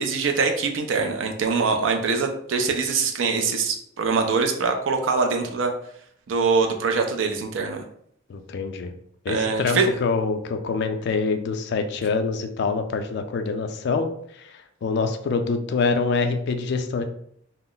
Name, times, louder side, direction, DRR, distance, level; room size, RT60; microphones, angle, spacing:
voice 1, 0.0-5.7 6.3-7.8 9.3-9.9, right 4 dB, 70° right, 4 dB, 0.4 m, -23 dB
voice 2, 8.3-8.9 9.2-14.1 14.3-17.0, left 4 dB, 55° left, 7 dB, 0.3 m, -25 dB
2.3 x 2.0 x 3.7 m, 0.68 s
head